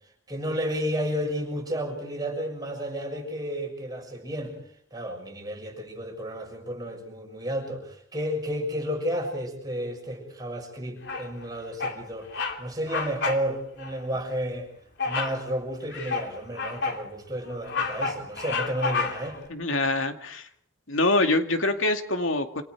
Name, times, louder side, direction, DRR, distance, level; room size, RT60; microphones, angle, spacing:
voice 1, 0.3-4.6 4.9-14.7 15.0-19.4, equal, 20° right, 1 dB, 6.8 m, -32 dB
Bird vocalization bird call bird song, 11.0-11.4 11.8-12.0 12.3-12.6 12.9-13.5 13.8-13.9 15.0-15.4 15.9-17.0 17.5-19.4, left 4 dB, 60° left, 3.0 m, -30 dB
voice 2, 19.5-20.5 20.9-22.6, left 2 dB, 80° left, 6 dB, 2.3 m, -25 dB
28.0 x 27.5 x 4.8 m, 0.65 s
head